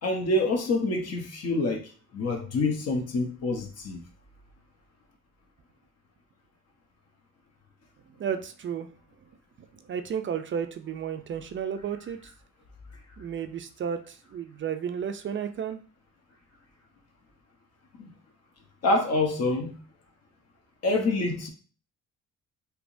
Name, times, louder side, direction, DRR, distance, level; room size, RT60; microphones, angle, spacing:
voice 1, 0.0-4.0 18.0-18.1 18.8-19.8 20.8-21.5, left 2 dB, 55° left, 0.9 m, -27 dB
voice 2, 8.2-8.9 9.6-12.3 13.2-15.8, right 8 dB, 40° right, 0.4 m, -33 dB
3.4 x 2.9 x 2.5 m
cardioid pair, 90°, 30 cm